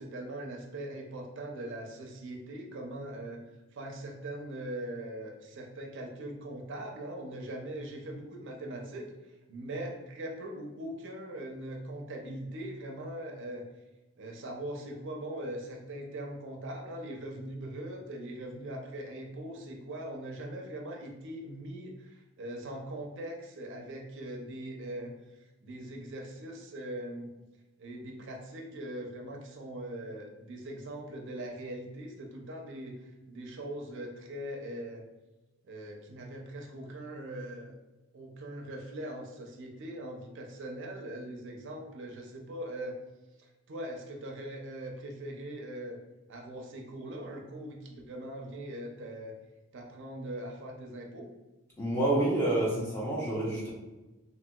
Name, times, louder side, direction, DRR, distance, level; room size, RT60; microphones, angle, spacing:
voice 1, 0.0-3.4 3.7-9.1 9.5-13.6 14.2-27.3 27.8-33.0 33.3-35.0 35.6-37.7 38.1-43.0 43.7-46.0 46.3-49.3 49.7-51.3, right 1 dB, 60° right, 1 dB, 0.5 m, -41 dB
voice 2, 51.8-53.7, right 1 dB, 10° left, -6 dB, 0.5 m, -28 dB
2.8 x 2.8 x 2.2 m, 1.1 s
head